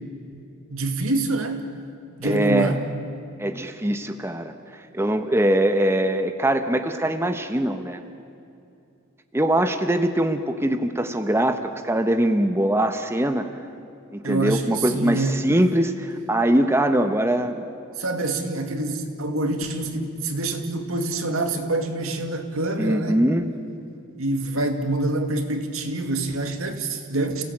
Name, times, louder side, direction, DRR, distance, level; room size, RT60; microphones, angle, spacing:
voice 1, 0.7-1.7 2.2-2.8 14.2-15.4 18.0-23.2 24.2-27.4, right 2 dB, 80° right, 5 dB, 2.3 m, -26 dB
voice 2, 2.2-2.7 3.4-4.5 4.9-8.0 9.3-13.5 14.1-17.6 22.8-23.5, right 1 dB, 10° right, 7 dB, 1.0 m, -22 dB
29.5 x 17.0 x 8.8 m, 2.6 s
head